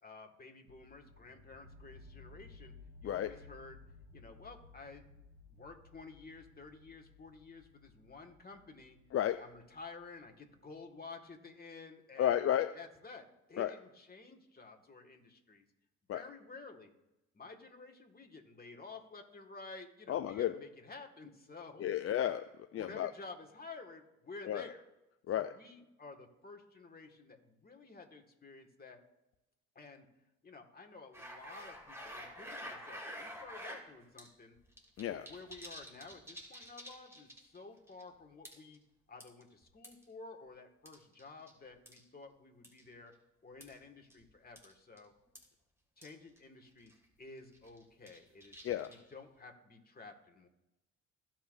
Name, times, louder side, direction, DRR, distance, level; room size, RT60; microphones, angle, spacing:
voice 1, 0.0-2.7 3.0-3.8 4.1-5.1 5.5-9.0 9.4-12.5 12.7-15.7 16.1-16.9 17.3-21.9 22.8-24.8 25.3-29.0 29.8-30.1 30.4-34.6 35.1-38.8 39.1-43.1 43.4-45.1 46.0-46.9 47.2-50.5, left 3 dB, 25° left, 3 dB, 2.0 m, -52 dB
sound 1, 0.7-10.5, left 3 dB, 65° right, 3.4 m, -58 dB
voice 2, 12.2-12.7 13.6-13.7 16.1-16.2 20.1-20.6 21.8-22.5 22.7-23.1 24.5-24.6 25.3-25.5 35.0-35.2 48.6-48.9, left 11 dB, 40° left, 10 dB, 0.5 m, -32 dB
sound 2, 31.1-33.8 34.2-34.3 34.6-37.6 37.9-38.0 38.4-38.8 39.2-40.0 40.8-41.5 41.9-42.0 42.6-42.8 43.6-43.7 44.1-44.2 44.6-44.7 45.0-45.1 45.3-45.4 46.0-46.1 46.4-46.5 46.8-47.0 47.5-49.1, equal, 5° right, 3.0 m, -48 dB
16.0 x 5.9 x 2.7 m, 0.93 s
hypercardioid pair, 60°, 36 cm